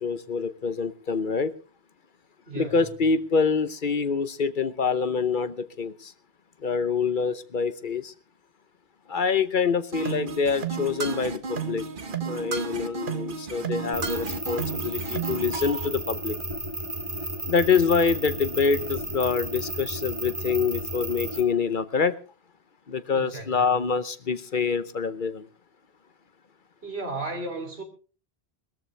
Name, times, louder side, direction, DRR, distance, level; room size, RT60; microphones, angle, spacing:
voice 1, 0.0-1.5 2.5-6.1 6.6-8.1 9.1-11.9 12.3-16.4 17.5-22.1 22.9-25.5, left 5 dB, 55° left, 1.0 m, -26 dB
voice 2, 2.5-2.8 23.1-23.8 26.8-27.8, right 2 dB, 80° right, 3.4 m, -35 dB
sound 1, 9.9-15.9, right 5 dB, 55° right, 1.4 m, -32 dB
sound 2, 13.9-21.4, right 1 dB, 30° right, 2.2 m, -33 dB
20.5 x 14.0 x 3.3 m
omnidirectional pair, 1.1 m